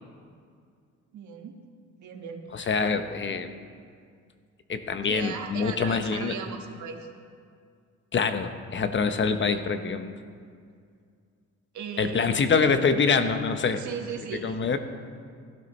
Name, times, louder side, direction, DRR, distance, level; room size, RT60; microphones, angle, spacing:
voice 1, 1.1-1.6 2.0-2.8 5.1-7.1 11.7-12.3 13.7-14.6, right 6 dB, 70° right, 3 dB, 1.5 m, -37 dB
voice 2, 2.5-3.5 4.7-6.4 8.1-10.1 12.0-13.8 14.3-14.8, left 5 dB, 40° left, 9 dB, 0.9 m, -25 dB
15.0 x 12.5 x 3.2 m, 2.2 s
cardioid pair, 90°, 30 cm